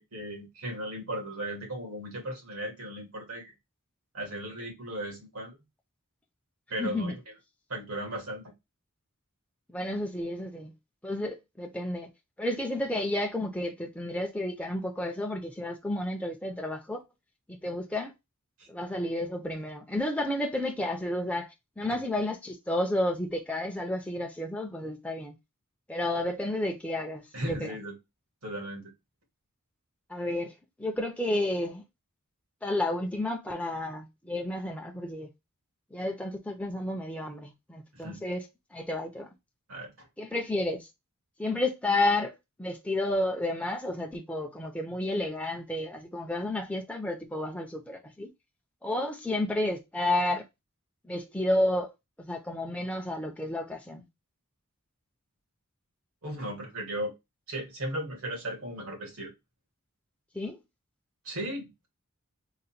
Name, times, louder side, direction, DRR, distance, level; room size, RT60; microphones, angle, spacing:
voice 1, 0.0-3.5 4.1-5.6 6.7-7.2 7.7-8.5 18.6-18.7 21.8-22.0 27.3-27.9 28.4-28.9 37.9-38.2 39.7-40.1 56.2-57.1 57.5-59.3 61.3-61.9, right 1 dB, 80° right, 1.8 m, -36 dB
voice 2, 6.8-7.2 9.7-10.7 11.0-12.1 12.4-17.0 17.5-18.1 18.7-21.5 21.8-25.3 25.9-27.7 30.1-30.5 30.8-31.8 32.6-35.3 35.9-38.5 38.7-39.3 40.2-40.9 41.4-42.3 42.6-48.3 48.8-50.4 51.0-51.9 52.2-54.0 60.3-60.6, left 1 dB, 5° left, 0.5 m, -31 dB
3.9 x 2.1 x 4.1 m
head